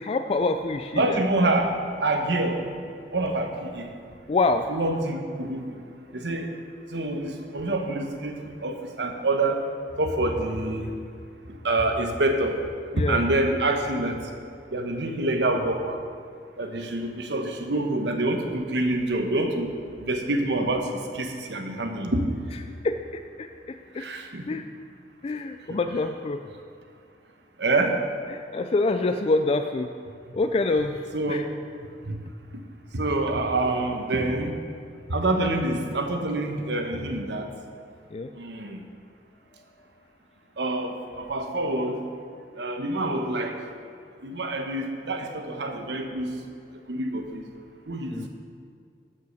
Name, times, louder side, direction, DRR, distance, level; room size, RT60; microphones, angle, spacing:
voice 1, 0.0-1.2 4.3-4.7 12.9-13.2 22.8-24.0 24.5-24.6 25.2-26.4 28.3-29.9 30.3-31.4 38.1-38.3 48.1-48.3, left 3 dB, 35° left, 7 dB, 0.3 m, -26 dB
voice 2, 0.9-2.6 3.1-3.9 4.7-5.8 6.1-6.5 6.9-8.4 8.6-9.6 10.0-10.9 11.6-12.6 13.0-14.2 14.7-16.0 16.6-19.7 20.0-22.3 24.0-24.6 25.7-25.8 27.6-28.0 31.1-31.5 32.0-32.2 32.9-34.6 35.1-37.5 38.3-38.8 40.6-42.0 42.6-43.6 44.2-46.4 46.9-47.4 47.9-48.3, right 2 dB, 75° right, 4 dB, 1.1 m, -26 dB
13.0 x 5.5 x 6.4 m, 2.2 s
head